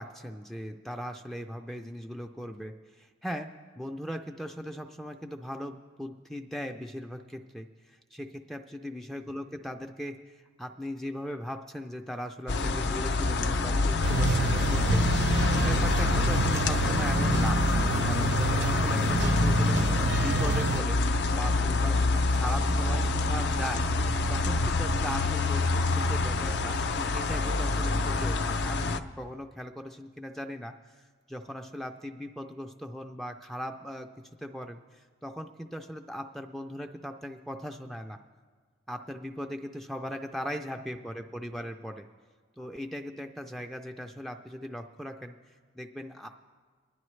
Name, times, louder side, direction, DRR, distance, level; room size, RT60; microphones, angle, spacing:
voice 1, 0.0-3.5 3.8-15.3 15.6-17.6 18.0-21.0 21.4-34.1 34.4-38.2 38.9-42.1 42.6-45.4 45.7-46.3, equal, ahead, 4 dB, 0.4 m, -39 dB
sound 1, 12.5-29.0, left 3 dB, 60° left, 0.5 m, -26 dB
sound 2, 14.0-20.8, right 4 dB, 65° right, 0.6 m, -29 dB
24.5 x 11.0 x 3.2 m, 1.5 s
head